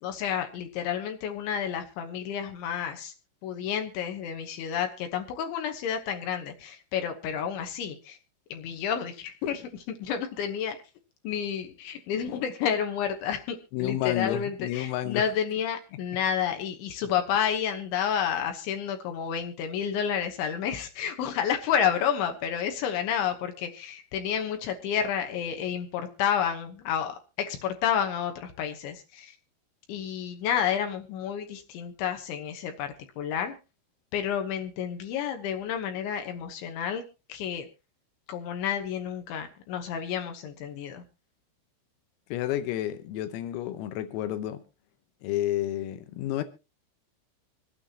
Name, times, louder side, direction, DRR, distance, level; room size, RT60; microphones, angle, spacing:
voice 1, 0.0-3.1 3.4-8.2 8.5-10.8 11.2-29.4 29.9-33.6 34.1-37.0 37.3-37.7 38.3-41.0, left 8 dB, 75° left, 3.2 m, -30 dB
voice 2, 13.7-15.3 42.3-44.6 45.2-46.4, left 13 dB, 90° left, 3.8 m, -30 dB
26.0 x 9.0 x 2.9 m
omnidirectional pair, 5.9 m